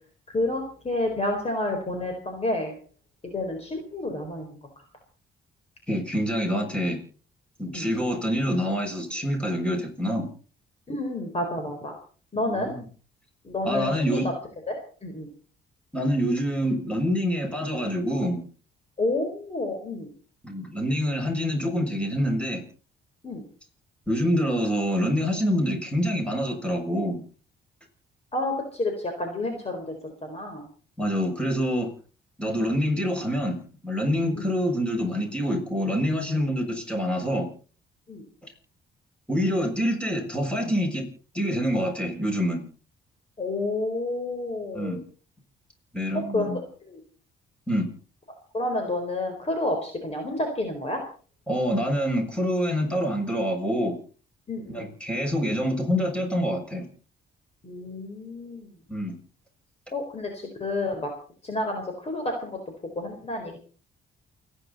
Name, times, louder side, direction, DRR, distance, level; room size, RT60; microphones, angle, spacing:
voice 1, 0.3-2.7 3.2-4.6 7.7-7.9 10.9-11.9 12.3-12.7 13.4-14.3 14.7-15.3 19.0-20.1 23.2-23.4 28.3-29.8 30.2-30.6 32.4-32.6 34.4-34.5 38.1-38.2 43.4-45.0 46.3-46.5 46.9-47.0 48.5-51.0 54.5-54.8 57.6-58.7 59.9-61.1 61.4-62.6 63.0-63.6, left 2 dB, 30° left, 4 dB, 4.2 m, -29 dB
voice 2, 5.9-7.0 7.6-10.3 12.3-12.8 13.6-14.3 15.9-18.4 20.4-22.6 24.1-27.2 31.0-31.9 32.4-37.5 39.3-41.1 41.3-42.6 44.7-45.0 45.9-46.6 47.7-47.9 51.5-54.0 54.7-56.8 58.9-59.2, equal, 5° left, 1 dB, 7.1 m, -26 dB
29.0 x 10.0 x 4.2 m, 0.41 s
cardioid pair, 90°, 20 cm